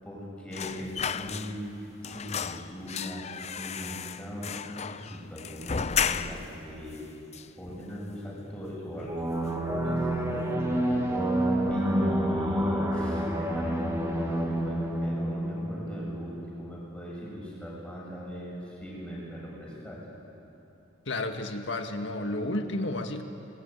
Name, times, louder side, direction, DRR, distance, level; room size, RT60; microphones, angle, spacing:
voice 1, 0.0-7.0 7.5-11.4 11.7-20.0, equal, 5° left, -5 dB, 7.6 m, -40 dB
sound 1, 0.5-1.8 2.0-6.6 6.9-7.0 7.3-8.1 8.5-8.7 9.0-9.7 10.0-10.2, left 7 dB, 35° left, 0.6 m, -34 dB
sound 2, 9.1-16.5, right 1 dB, 15° right, 2.6 m, -28 dB
voice 2, 21.1-23.2, left 2 dB, 65° left, 5 dB, 1.8 m, -31 dB
28.0 x 20.5 x 9.1 m, 3.0 s
head